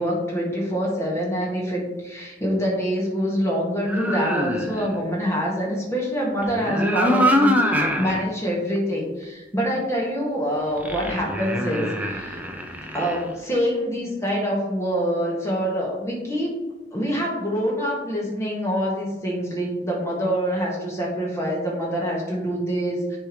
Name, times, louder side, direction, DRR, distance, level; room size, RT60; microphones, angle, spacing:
voice 1, 0.0-12.4 12.9-16.5 16.9-23.2, equal, 15° left, -3 dB, 1.6 m, -25 dB
sound 1, 3.8-5.0 6.4-8.3 8.8-8.9 10.8-13.3, equal, 10° right, 0.6 m, -24 dB
10.0 x 3.5 x 3.1 m, 1.1 s
head